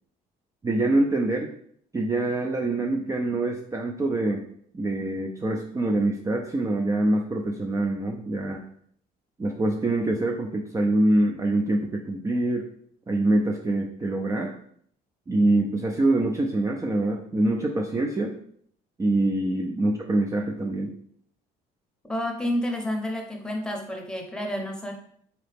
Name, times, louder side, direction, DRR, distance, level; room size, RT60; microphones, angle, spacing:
voice 1, 0.6-1.5 1.9-4.4 4.7-8.6 9.4-12.7 13.1-14.5 15.3-18.3 19.0-20.9, right 2 dB, 20° right, 1 dB, 0.4 m, -25 dB
voice 2, 22.1-24.9, left 1 dB, 5° left, 1 dB, 0.8 m, -29 dB
4.0 x 2.9 x 3.3 m, 0.64 s
cardioid pair, 110°, 17 cm